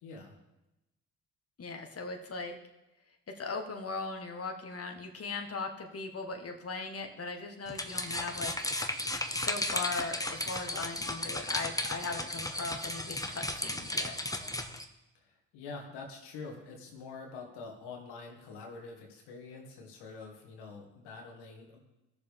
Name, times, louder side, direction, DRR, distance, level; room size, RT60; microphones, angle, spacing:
voice 1, 0.0-0.4 15.2-21.8, left 4 dB, 75° left, 1 dB, 2.0 m, -46 dB
voice 2, 1.6-2.6 3.3-8.8 9.4-14.2, left 3 dB, 35° left, 4 dB, 1.6 m, -39 dB
sound 1, 7.7-14.8, left 1 dB, 10° left, 1.1 m, -35 dB
17.0 x 6.8 x 3.6 m, 0.96 s
hypercardioid pair, 45°, 40 cm